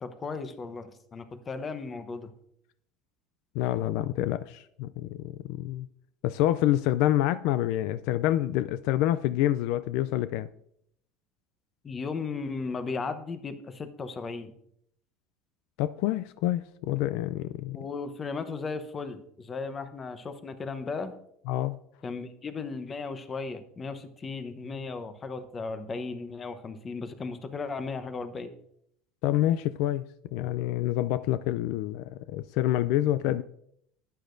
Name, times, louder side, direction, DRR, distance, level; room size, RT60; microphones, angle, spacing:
voice 1, 0.0-2.3 11.8-14.5 17.7-21.1 22.0-28.5, left 4 dB, 25° left, 0.9 m, -36 dB
voice 2, 3.5-5.9 6.2-10.5 15.8-17.8 21.5-21.8 29.2-30.0 30.3-33.4, left 13 dB, 70° left, 0.3 m, -27 dB
11.0 x 9.8 x 2.6 m
cardioid pair, 140°, 0 cm